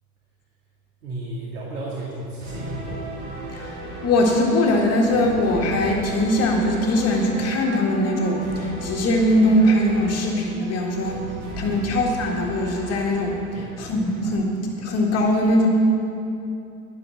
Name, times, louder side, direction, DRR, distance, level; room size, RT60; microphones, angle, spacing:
voice 1, 1.0-3.0 11.7-11.9 13.5-13.7, right 2 dB, 70° right, -6 dB, 2.5 m, -33 dB
sound 1, 2.4-14.4, right 2 dB, 45° right, 3.0 m, -36 dB
voice 2, 4.0-11.2 11.6-13.4 13.8-14.5 14.8-15.7, left 1 dB, 30° left, -1 dB, 1.9 m, -21 dB
12.0 x 8.8 x 7.2 m, 2.8 s
figure-of-eight pair, 85°, 47 cm